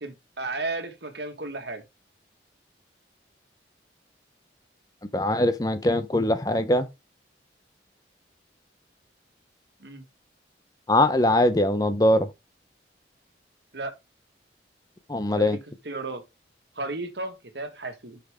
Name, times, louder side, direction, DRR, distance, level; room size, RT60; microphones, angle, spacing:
voice 1, 0.0-1.8 9.8-10.1 13.7-13.9 15.4-16.2 16.8-18.2, right 2 dB, 65° right, 1.6 m, -34 dB
voice 2, 5.1-6.9 10.9-12.3 15.1-15.6, left 1 dB, 20° left, 0.7 m, -21 dB
6.8 x 6.0 x 3.6 m
head